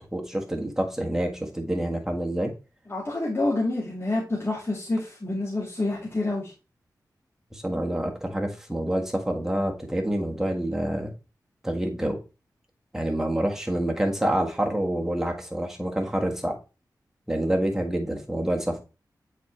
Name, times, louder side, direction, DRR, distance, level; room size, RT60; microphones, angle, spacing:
voice 1, 0.0-2.5 7.5-11.1 11.6-12.2 12.9-16.5 17.3-18.8, right 1 dB, 5° right, 1 dB, 1.5 m, -27 dB
voice 2, 2.9-6.5, left 2 dB, 35° left, -5 dB, 2.0 m, -27 dB
7.3 x 4.3 x 3.3 m, 0.31 s
wide cardioid pair, 75°, 7 cm